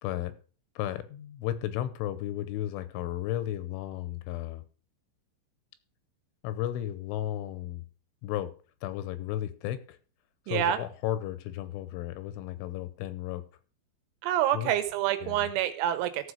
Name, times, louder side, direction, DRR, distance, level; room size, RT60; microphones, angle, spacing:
voice 1, 0.0-0.3 0.8-4.6 6.4-7.8 8.2-8.6 8.8-10.0 10.5-13.4 14.5-14.7 15.2-15.5, left 12 dB, 80° left, 3.2 m, -34 dB
voice 2, 10.5-10.8 14.2-16.3, right 11 dB, 85° right, 3.9 m, -27 dB
14.5 x 5.3 x 6.4 m
omnidirectional pair, 5.9 m